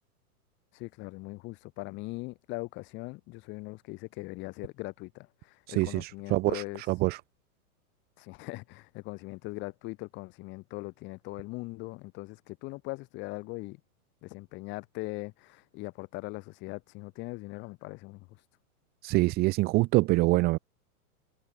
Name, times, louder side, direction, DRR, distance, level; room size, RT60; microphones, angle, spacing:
voice 1, 0.7-6.8 8.2-13.8 14.2-18.3, left 23 dB, 25° left, 1.2 m, -40 dB
voice 2, 5.7-7.2 19.0-20.6, right 21 dB, 20° right, 0.9 m, -25 dB
hypercardioid pair, 150°, 44 cm